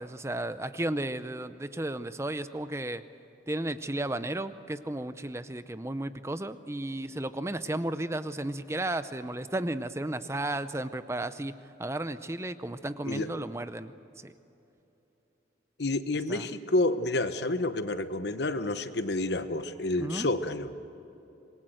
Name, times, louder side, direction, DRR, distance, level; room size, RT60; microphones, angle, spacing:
voice 1, 0.0-3.0 3.5-11.5 11.8-13.9 14.2-14.3 16.3-16.5 20.0-20.3, right 1 dB, 15° right, 12 dB, 0.6 m, -33 dB
voice 2, 15.8-20.7, left 2 dB, 65° left, 11 dB, 1.0 m, -29 dB
26.5 x 21.5 x 7.9 m, 3.0 s
head